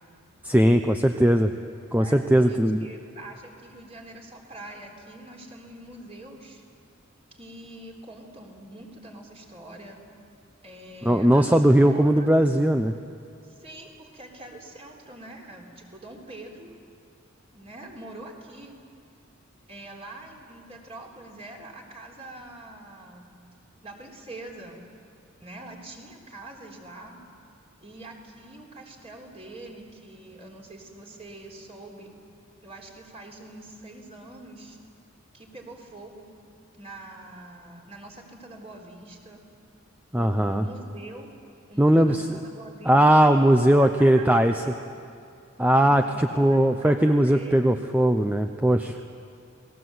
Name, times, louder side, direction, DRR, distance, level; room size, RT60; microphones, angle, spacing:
voice 1, 0.4-1.5 1.9-2.9 11.0-12.9 40.1-40.6 41.8-42.4 42.9-44.6 45.6-49.0, right 1 dB, 10° right, 6 dB, 0.6 m, -19 dB
voice 2, 1.9-6.6 7.3-10.0 10.6-12.3 13.4-16.7 17.5-18.8 19.7-23.3 23.8-24.8 25.4-27.2 27.8-32.1 32.6-34.8 35.3-36.3 36.8-39.4 40.2-41.3 41.7-43.2 43.6-44.8 45.8-47.7, right 2 dB, 30° right, 0 dB, 3.7 m, -44 dB
29.5 x 20.0 x 8.0 m, 2.5 s
head